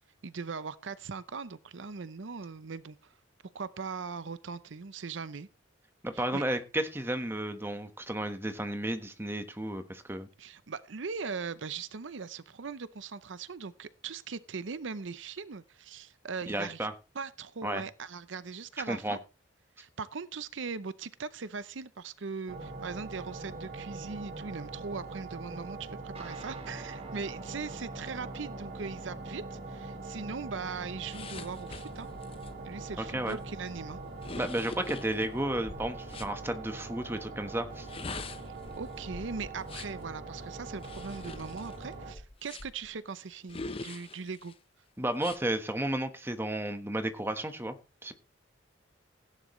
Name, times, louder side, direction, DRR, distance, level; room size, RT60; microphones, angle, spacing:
voice 1, 0.2-3.0 3.5-5.5 6.1-6.4 10.4-16.9 17.1-19.2 19.8-32.1 32.6-34.0 38.7-44.5, right 5 dB, 75° right, 0.7 m, -40 dB
voice 2, 6.0-10.3 16.5-16.9 17.6-17.8 18.9-19.2 33.0-33.4 34.3-37.9 45.0-47.7 48.0-48.1, right 1 dB, 10° right, 1.3 m, -33 dB
sound 1, 22.5-42.1, right 3 dB, 50° right, 2.2 m, -43 dB
sound 2, 26.1-34.4, right 1 dB, 30° right, 1.4 m, -50 dB
sound 3, 31.1-36.4 37.7-40.0 40.8-42.9 43.5-44.5 45.2-45.4, left 3 dB, 30° left, 0.7 m, -44 dB
16.0 x 10.5 x 3.2 m
head